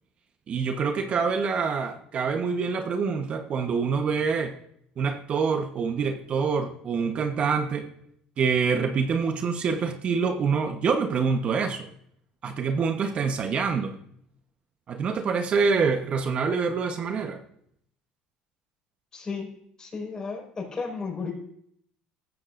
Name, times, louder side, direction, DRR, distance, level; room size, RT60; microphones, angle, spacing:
voice 1, 0.5-4.5 5.0-7.9 8.4-11.9 12.4-13.9 14.9-17.4, right 5 dB, 45° right, 6 dB, 1.1 m, -26 dB
voice 2, 19.1-19.5 19.8-21.3, left 4 dB, 30° left, 0 dB, 5.1 m, -33 dB
15.0 x 13.5 x 2.6 m, 0.71 s
supercardioid pair, 95°, 3 cm